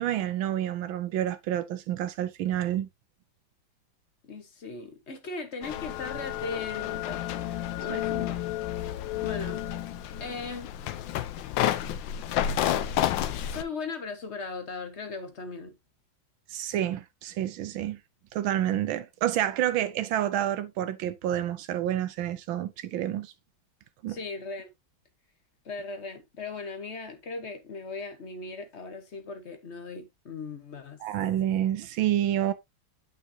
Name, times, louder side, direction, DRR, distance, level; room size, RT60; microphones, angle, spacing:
voice 1, 0.0-2.9 7.9-8.0 16.5-18.0 18.3-23.3 24.0-24.2 31.0-32.5, right 11 dB, 85° right, 1.6 m, -29 dB
voice 2, 4.2-8.5 9.2-9.6 10.2-11.1 13.5-15.7 24.1-24.7 25.6-31.0, left 4 dB, 40° left, 1.2 m, -38 dB
sound 1, 5.6-13.6, left 11 dB, 75° left, 1.3 m, -30 dB
8.8 x 6.1 x 2.8 m
omnidirectional pair, 2.1 m